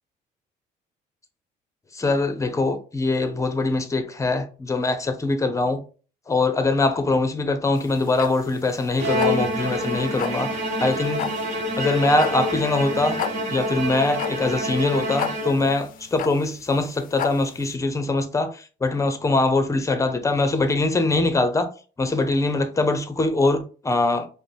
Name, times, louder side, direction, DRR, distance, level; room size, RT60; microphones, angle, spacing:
voice 1, 1.9-5.8 6.3-11.3 11.8-13.2 13.5-21.7 22.0-24.3, left 2 dB, 20° left, 0.7 m, -23 dB
sound 1, 7.8-17.7, left 9 dB, 55° left, 0.4 m, -33 dB
Bowed string instrument, 9.0-16.0, equal, 45° right, 1.3 m, -27 dB
4.9 x 2.1 x 3.3 m
cardioid pair, 110°, 17 cm